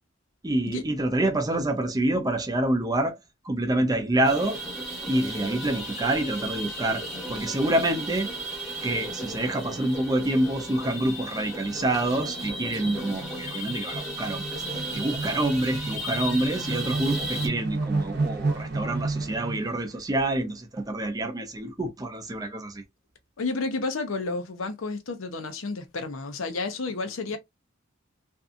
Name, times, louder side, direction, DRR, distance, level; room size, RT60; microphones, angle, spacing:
voice 1, 0.4-3.2 3.4-4.6 5.1-8.3 8.8-22.8, right 1 dB, 20° right, 0.5 m, -27 dB
sound 1, 4.2-17.5, right 1 dB, 5° right, 1.0 m, -35 dB
sound 2, 9.2-9.5 9.9-10.0 10.2-19.9, right 3 dB, 55° right, 0.7 m, -33 dB
voice 2, 23.4-27.4, left 3 dB, 80° left, 0.6 m, -31 dB
2.6 x 2.3 x 2.4 m
head